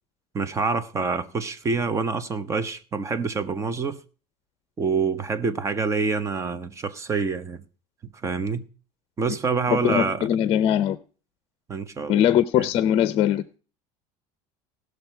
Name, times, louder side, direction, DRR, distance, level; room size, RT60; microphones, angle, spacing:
voice 1, 0.3-4.0 4.8-7.6 8.2-8.7 9.2-10.3 11.7-12.3 12.6-12.7, right 4 dB, 20° right, 0.9 m, -26 dB
voice 2, 9.7-11.0 12.1-13.6, left 10 dB, 45° left, 0.6 m, -21 dB
17.5 x 6.4 x 4.6 m
cardioid pair, 145°, 14 cm